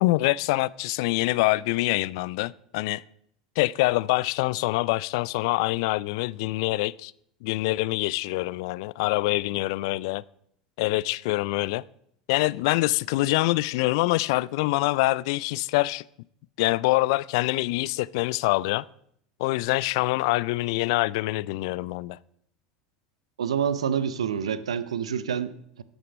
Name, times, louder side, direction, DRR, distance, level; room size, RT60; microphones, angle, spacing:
voice 1, 0.0-3.0 3.6-7.1 7.4-10.2 10.8-11.8 12.3-16.0 16.6-18.8 19.4-22.2, left 20 dB, 60° left, 0.3 m, -25 dB
voice 2, 23.4-25.8, right 8 dB, 80° right, 0.6 m, -28 dB
12.5 x 8.0 x 5.2 m
hypercardioid pair, 80°, 3 cm